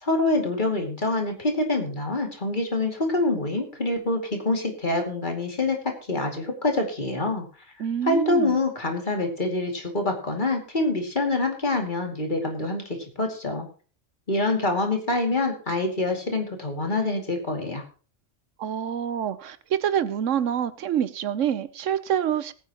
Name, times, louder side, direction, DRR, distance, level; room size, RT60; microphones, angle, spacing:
voice 1, 0.0-7.5 8.0-12.8 13.2-13.7 14.3-17.8, left 2 dB, 40° left, 3 dB, 2.6 m, -26 dB
voice 2, 7.8-8.5 18.6-22.5, right 9 dB, 90° right, 15 dB, 1.2 m, -26 dB
19.5 x 9.3 x 3.0 m, 0.37 s
omnidirectional pair, 1.3 m